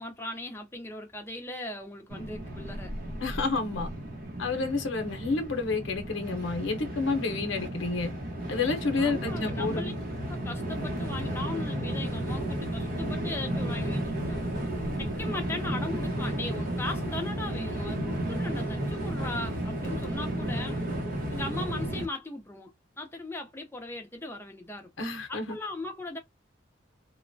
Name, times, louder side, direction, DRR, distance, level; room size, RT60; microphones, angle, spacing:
voice 1, 0.0-2.9 9.0-9.9 10.3-14.4 15.0-20.8 21.3-24.9 25.3-26.2, left 2 dB, 10° left, 0.6 m, -38 dB
Train, 2.1-22.0, right 1 dB, 50° right, 0.8 m, -33 dB
voice 2, 3.2-3.9 4.4-8.1 8.5-9.9 25.0-25.6, left 3 dB, 85° left, 0.7 m, -29 dB
3.0 x 2.1 x 2.5 m
head